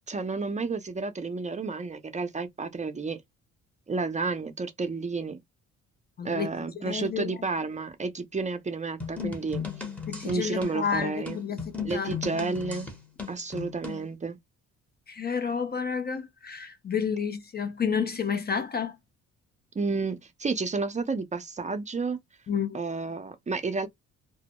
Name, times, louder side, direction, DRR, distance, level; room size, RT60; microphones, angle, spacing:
voice 1, 0.1-3.2 3.9-5.4 6.2-9.6 10.2-11.4 11.8-12.9 13.3-14.4 19.7-22.2 22.7-23.9, right 4 dB, 25° right, 0.5 m, -31 dB
voice 2, 6.2-6.5 6.9-7.3 10.1-11.6 11.9-12.1 15.1-19.0 22.5-22.8, left 6 dB, 35° left, 0.4 m, -30 dB
sound 1, 9.0-14.1, left 6 dB, 5° left, 0.8 m, -36 dB
2.1 x 2.0 x 2.9 m
cardioid pair, 90°, 30 cm